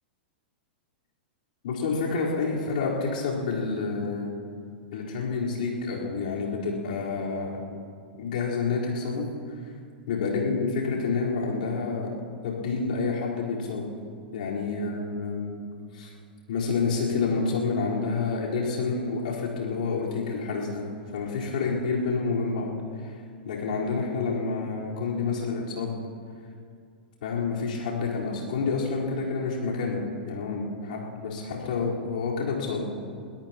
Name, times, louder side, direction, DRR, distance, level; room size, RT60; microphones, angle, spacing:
voice 1, 1.6-4.3 4.9-7.6 8.2-9.3 10.1-13.9 14.3-15.6 15.9-16.1 16.5-20.9 21.1-22.7 23.0-23.1 23.4-26.0 27.2-32.9, left 4 dB, 60° left, -5 dB, 4.4 m, -28 dB
22.5 x 17.5 x 3.0 m, 2.2 s
figure-of-eight pair, 100°, 5 cm